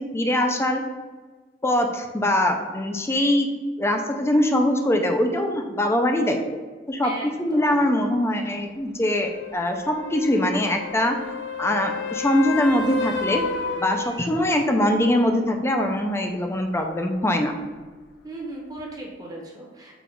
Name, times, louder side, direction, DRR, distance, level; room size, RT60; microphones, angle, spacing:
voice 1, 0.1-0.8 1.6-3.5 3.8-6.4 6.9-7.1 7.4-11.2 11.6-13.4 13.8-17.5, left 1 dB, 15° left, 4 dB, 0.4 m, -22 dB
voice 2, 7.0-7.8 18.2-20.0, right 2 dB, 20° right, -1 dB, 0.8 m, -37 dB
sound 1, 9.0-14.7 18.8-18.9, left 4 dB, 70° left, 0.5 m, -32 dB
5.8 x 2.3 x 3.7 m, 1.4 s
head